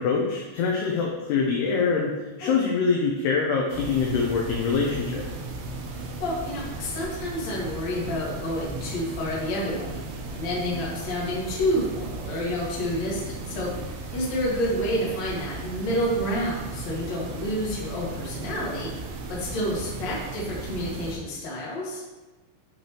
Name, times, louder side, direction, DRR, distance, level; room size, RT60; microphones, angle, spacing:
voice 1, 0.0-5.3, left 5 dB, 80° left, -1 dB, 2.4 m, -24 dB
sound 1, 3.7-21.2, right 3 dB, 80° right, 3.3 m, -36 dB
voice 2, 5.9-22.0, equal, 50° left, -5 dB, 2.3 m, -29 dB
11.0 x 4.6 x 3.0 m, 1.2 s
omnidirectional pair, 5.5 m